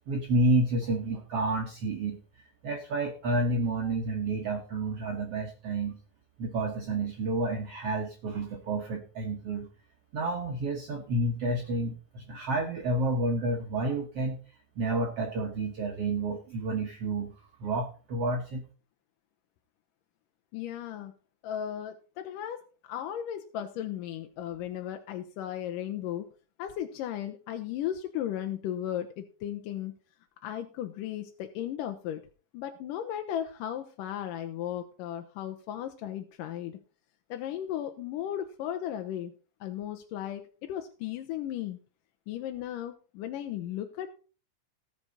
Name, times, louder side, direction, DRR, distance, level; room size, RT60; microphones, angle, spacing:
voice 1, 0.1-6.0 6.4-9.7 10.1-14.4 14.8-17.3 17.6-18.6, right 2 dB, 55° right, 1 dB, 2.0 m, -30 dB
voice 2, 20.5-21.1 21.4-26.3 26.6-29.9 30.4-32.2 32.5-36.8 37.3-39.3 39.6-41.8 42.3-44.1, left 11 dB, 80° left, 5 dB, 2.5 m, -36 dB
18.5 x 6.2 x 4.0 m, 0.36 s
omnidirectional pair, 3.8 m